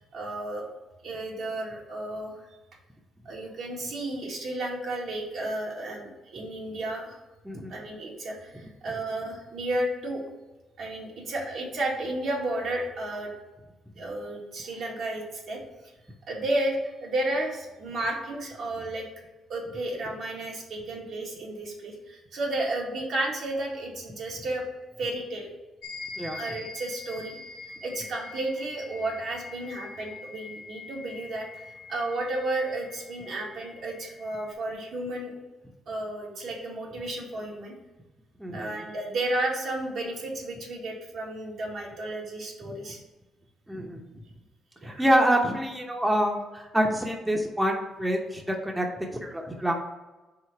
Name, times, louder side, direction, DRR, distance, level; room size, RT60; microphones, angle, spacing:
voice 1, 0.1-0.6 1.0-2.3 3.3-7.2 7.7-10.2 10.8-13.3 14.0-15.6 16.3-19.1 19.5-24.6 25.0-25.5 26.3-27.4 27.8-31.5 31.9-35.3 35.9-37.7 38.5-43.0 44.8-45.0, right 1 dB, 65° right, -2 dB, 1.8 m, -32 dB
voice 2, 7.4-7.8 26.2-26.4 38.4-38.9 42.6-42.7 43.7-44.0 44.8-49.8, equal, 10° right, 1 dB, 0.8 m, -26 dB
sound 1, 25.8-34.5, left 3 dB, 90° left, 0.7 m, -44 dB
4.9 x 3.8 x 5.8 m, 1.1 s
cardioid pair, 90°, 0 cm